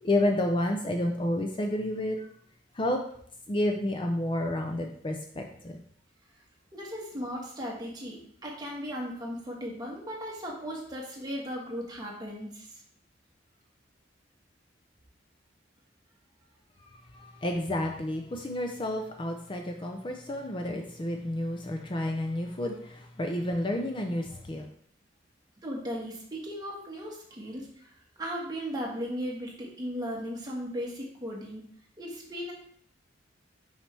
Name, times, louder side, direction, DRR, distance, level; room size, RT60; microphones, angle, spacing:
voice 1, 0.0-2.3 2.8-3.0 3.5-5.8 17.1-24.6, left 1 dB, 25° left, 3 dB, 0.5 m, -30 dB
voice 2, 6.7-12.8 25.6-31.6 32.0-32.5, equal, 20° right, -2 dB, 1.5 m, -37 dB
5.9 x 5.7 x 3.3 m, 0.62 s
head